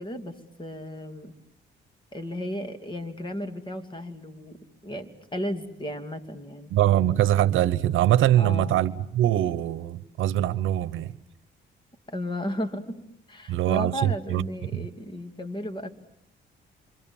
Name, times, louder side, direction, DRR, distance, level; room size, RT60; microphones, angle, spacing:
voice 1, 0.0-1.3 2.1-6.7 8.4-8.8 12.1-13.0 13.3-15.9, equal, 25° left, 2.9 m, -34 dB
voice 2, 6.7-11.1 13.5-14.5 14.7-14.9, right 12 dB, 80° right, 1.0 m, -23 dB
28.0 x 26.5 x 7.3 m
cardioid pair, 90°, 20 cm